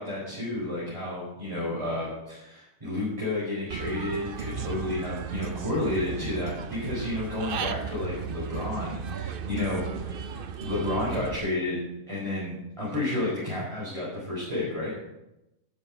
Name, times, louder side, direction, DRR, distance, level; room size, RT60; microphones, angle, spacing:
voice 1, 0.0-14.9, left 2 dB, 20° right, -8 dB, 5.1 m, -31 dB
Human voice / Bird, 3.7-11.3, right 7 dB, 55° right, 0.6 m, -35 dB
12.0 x 11.5 x 5.0 m, 0.91 s
omnidirectional pair, 1.6 m